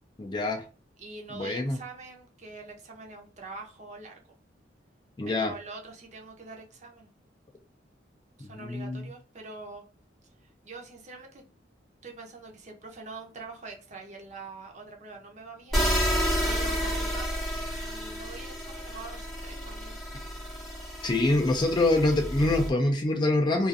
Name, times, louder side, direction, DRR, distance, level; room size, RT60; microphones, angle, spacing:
voice 1, 0.2-0.6 1.3-1.8 5.2-5.5 8.5-9.1 21.0-23.7, left 2 dB, 25° left, 3 dB, 0.3 m, -25 dB
voice 2, 1.0-4.2 5.3-7.1 8.4-9.8 10.4-11.4 12.0-20.0, right 3 dB, 40° right, 2 dB, 0.6 m, -44 dB
sound 1, 15.7-22.7, equal, ahead, 0.7 m, -31 dB
2.4 x 2.4 x 2.5 m, 0.36 s
head